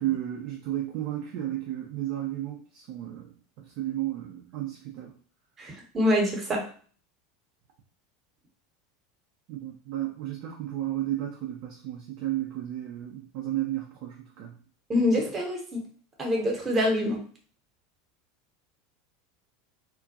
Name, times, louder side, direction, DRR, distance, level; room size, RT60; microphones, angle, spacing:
voice 1, 0.0-5.1 9.5-14.6, right 13 dB, 55° right, 0 dB, 0.4 m, -33 dB
voice 2, 5.6-6.6 14.9-15.8 16.2-17.2, left 1 dB, 25° right, 0 dB, 0.9 m, -25 dB
2.4 x 2.1 x 2.6 m, 0.43 s
figure-of-eight pair, 80°, 0 cm